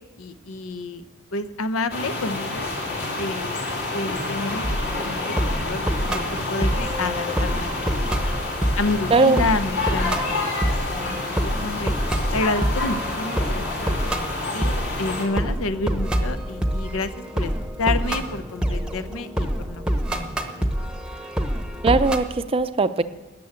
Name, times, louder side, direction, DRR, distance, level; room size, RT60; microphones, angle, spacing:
voice 1, 0.2-1.0 1.3-2.7 3.2-3.6 3.9-4.6 5.0-6.2 6.5-7.7 8.8-10.5 10.8-11.9 12.3-14.0 14.5-17.5 17.8-20.9, left 3 dB, 80° left, 12 dB, 0.8 m, -29 dB
sound 1, 1.9-15.2, left 2 dB, 50° left, 2.6 m, -29 dB
sound 2, 4.6-22.2, equal, 5° right, 0.9 m, -27 dB
voice 2, 9.1-9.5 21.8-23.0, right 3 dB, 25° right, 12 dB, 0.5 m, -19 dB
13.0 x 7.0 x 9.4 m, 1.3 s
head